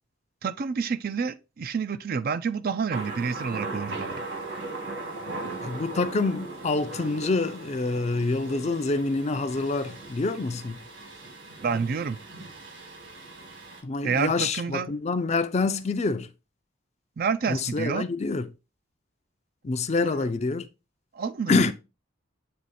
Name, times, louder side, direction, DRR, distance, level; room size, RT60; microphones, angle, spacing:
voice 1, 0.4-4.2 11.6-12.2 14.0-14.9 17.2-18.0 21.1-21.7, right 5 dB, 50° right, 0.4 m, -29 dB
Thunder, 2.9-13.8, right 2 dB, 70° right, 2.0 m, -38 dB
voice 2, 5.6-10.8 13.8-16.3 17.5-18.5 19.6-20.7 21.5-21.7, left 3 dB, 35° left, 0.4 m, -26 dB
7.7 x 3.0 x 4.1 m
head